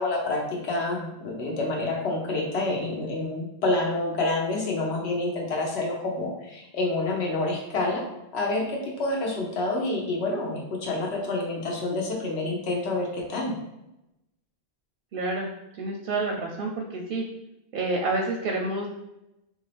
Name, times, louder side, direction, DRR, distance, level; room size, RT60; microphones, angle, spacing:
voice 1, 0.0-8.0 8.3-13.5, left 2 dB, 75° left, -1 dB, 1.1 m, -28 dB
voice 2, 15.1-15.5 15.8-17.2 17.7-18.9, right 2 dB, 60° right, 0 dB, 0.6 m, -28 dB
3.6 x 2.5 x 3.3 m, 0.90 s
omnidirectional pair, 1.1 m